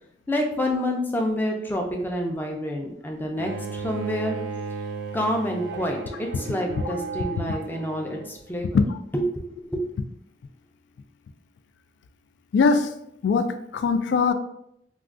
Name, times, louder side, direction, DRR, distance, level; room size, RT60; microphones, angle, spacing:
voice 1, 0.3-4.4 5.1-6.0 6.3-8.8 9.1-9.9, equal, 10° left, 1 dB, 0.4 m, -28 dB
Bowed string instrument, 3.4-8.4, right 4 dB, 65° right, 0.4 m, -34 dB
voice 2, 12.5-12.9 13.2-14.3, left 4 dB, 85° left, 9 dB, 0.3 m, -21 dB
2.3 x 2.3 x 3.6 m, 0.73 s
head